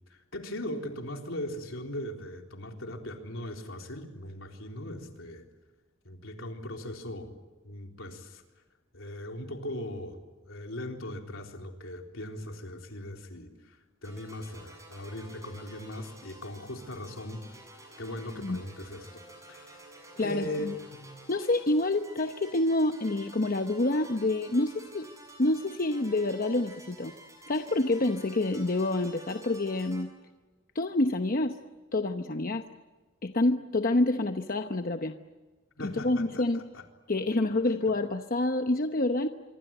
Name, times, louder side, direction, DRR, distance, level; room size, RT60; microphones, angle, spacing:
voice 1, 0.1-5.4 6.0-7.3 7.6-8.4 8.9-10.2 10.4-13.8 14.0-19.2 19.5-19.7 20.2-21.1 35.8-36.4 36.7-36.8, left 1 dB, 75° left, 2 dB, 4.0 m, -39 dB
sound 1, 14.0-30.0, right 1 dB, 15° right, 7.6 m, -51 dB
voice 2, 20.2-20.8 21.3-25.1 25.4-27.1 27.5-30.1 30.7-31.6 31.9-32.6 33.2-35.1 35.8-36.6 37.1-39.3, left 2 dB, 45° left, 6 dB, 1.0 m, -27 dB
26.5 x 24.5 x 9.1 m, 1.2 s
head